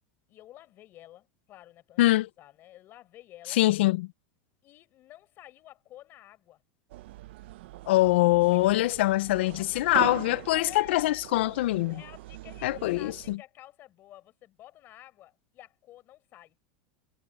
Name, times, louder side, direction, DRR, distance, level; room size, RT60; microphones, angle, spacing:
voice 1, 0.3-3.6 4.6-6.6 8.5-8.7 9.6-11.2 11.9-16.6, left 14 dB, 35° left, 4.5 m, -52 dB
voice 2, 2.0-2.3 3.5-4.1 7.9-12.0 12.6-13.4, left 17 dB, 80° left, 0.6 m, -24 dB
sound 1, 6.9-13.4, right 17 dB, 80° right, 0.8 m, -42 dB
supercardioid pair, 155°, 6 cm